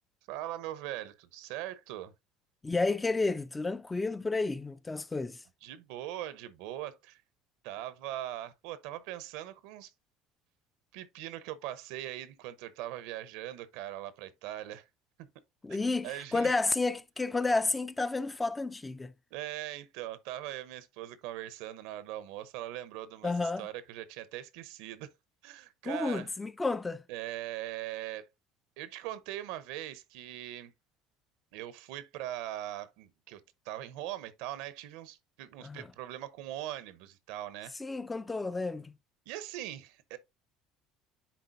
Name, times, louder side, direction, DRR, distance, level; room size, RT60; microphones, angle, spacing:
voice 1, 0.3-2.1 5.6-7.2 7.6-9.9 10.9-14.8 15.2-15.3 16.0-16.5 19.3-25.1 25.4-26.3 27.1-28.3 28.8-30.7 31.5-37.7 39.3-40.2, right 13 dB, 80° right, 0.8 m, -41 dB
voice 2, 2.6-5.4 15.6-19.1 23.2-23.7 25.8-27.0 35.6-35.9 37.8-38.9, left 3 dB, 15° left, 0.4 m, -31 dB
10.0 x 3.9 x 2.6 m
cardioid pair, 120°, 0 cm